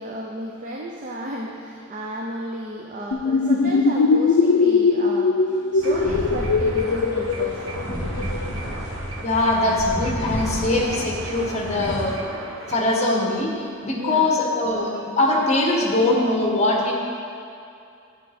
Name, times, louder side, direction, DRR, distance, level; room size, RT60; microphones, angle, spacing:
voice 1, 0.0-7.8 14.0-14.3, right 1 dB, 40° right, -1 dB, 0.7 m, -33 dB
sound 1, 3.1-8.5, left 4 dB, 85° left, 0.5 m, -20 dB
sound 2, 5.8-12.0, equal, 20° right, 2.0 m, -31 dB
sound 3, 5.8-12.9, right 2 dB, 80° right, 0.9 m, -37 dB
voice 2, 9.2-12.2 12.7-13.5 13.8-16.9, left 2 dB, 35° left, -1 dB, 1.3 m, -22 dB
9.4 x 8.0 x 4.3 m, 2.5 s
head